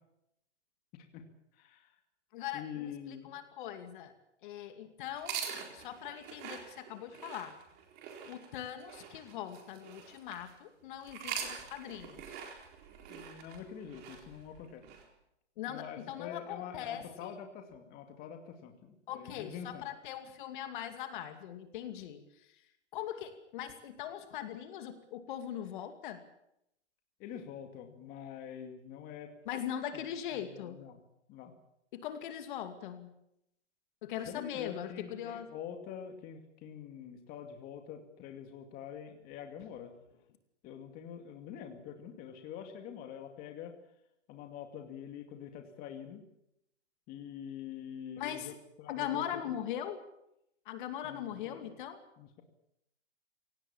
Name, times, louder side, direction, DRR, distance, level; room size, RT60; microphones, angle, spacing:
voice 1, 0.9-1.2 1.5-1.9 2.5-3.3 13.1-14.8 15.7-19.8 27.2-29.3 29.9-30.0 30.3-31.0 31.3-31.5 34.3-39.9 40.6-43.7 44.3-46.2 47.1-49.6 51.0-51.7 52.2-52.4, left 8 dB, 25° left, 5 dB, 2.4 m, -45 dB
voice 2, 2.3-4.1 4.4-5.4 5.7-7.6 8.2-12.4 15.6-17.3 19.1-22.2 22.9-26.2 29.5-30.8 31.9-33.1 34.0-35.5 48.2-48.5 48.9-50.0 50.7-52.0, left 10 dB, 45° left, 7 dB, 2.5 m, -40 dB
sound 1, 5.1-10.5 11.0-15.0, right 7 dB, 30° right, 4.1 m, -44 dB
25.5 x 18.0 x 7.4 m, 0.81 s
hypercardioid pair, 150°, 36 cm